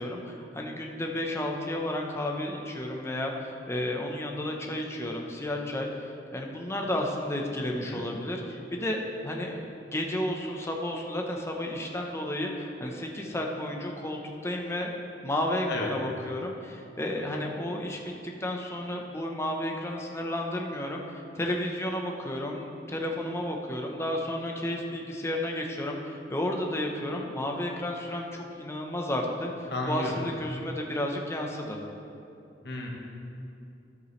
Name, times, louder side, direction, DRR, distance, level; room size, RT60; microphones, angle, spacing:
voice 1, 0.0-5.9 6.3-9.6 9.9-15.0 15.2-18.0 18.4-31.8, left 1 dB, 15° left, 1 dB, 0.9 m, -32 dB
voice 2, 7.6-8.0 15.7-15.9 29.7-30.1 32.6-32.9, left 2 dB, 65° left, 0 dB, 1.4 m, -33 dB
13.5 x 8.1 x 3.2 m, 2.6 s
head